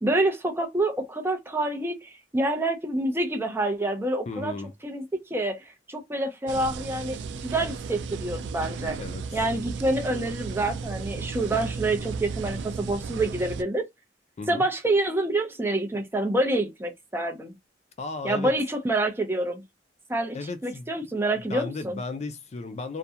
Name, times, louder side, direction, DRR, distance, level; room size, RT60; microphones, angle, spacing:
voice 1, 0.0-4.5 4.8-5.0 5.3-9.0 9.3-13.8 14.5-17.5 18.2-19.6 20.1-20.4 20.6-22.0, right 2 dB, 15° right, 0.5 m, -27 dB
voice 2, 4.3-4.7 9.0-9.2 14.4-14.7 18.0-18.5 20.3-20.9 21.5-23.0, left 3 dB, 40° left, 0.3 m, -34 dB
sound 1, 6.5-13.6, right 5 dB, 80° right, 0.3 m, -34 dB
2.4 x 2.2 x 2.7 m
head